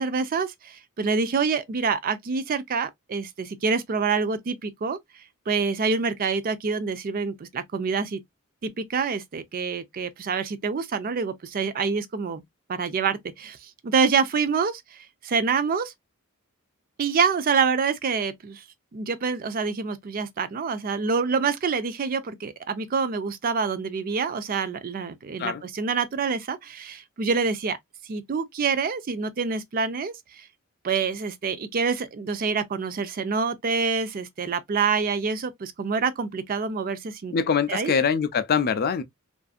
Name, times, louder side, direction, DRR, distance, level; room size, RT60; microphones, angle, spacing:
voice 1, 0.0-5.0 5.5-8.2 8.6-12.4 12.7-15.9 17.0-18.6 18.9-27.8 28.0-30.5 30.8-37.3 37.7-37.9, right 5 dB, 40° right, 0.4 m, -26 dB
voice 2, 37.3-39.0, left 6 dB, 45° left, 0.4 m, -23 dB
2.6 x 2.4 x 2.3 m
head